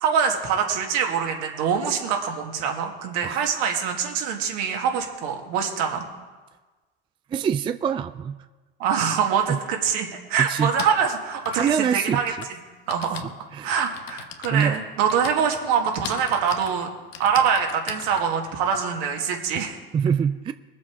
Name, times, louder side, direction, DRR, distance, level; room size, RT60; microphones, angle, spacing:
voice 1, 0.0-6.1 8.8-12.3 12.9-13.2 13.6-16.9 17.2-19.8, right 7 dB, 65° right, 2 dB, 2.1 m, -24 dB
voice 2, 7.3-8.4 9.5-9.6 10.4-10.7 11.5-12.2 13.5-13.7 14.5-14.8 19.9-20.5, right 7 dB, 15° right, 12 dB, 0.3 m, -24 dB
Typing, 9.4-9.5 10.5-19.6, left 9 dB, 85° left, 1.1 m, -40 dB
20.0 x 7.5 x 4.7 m, 1.3 s
supercardioid pair, 100°, 30 cm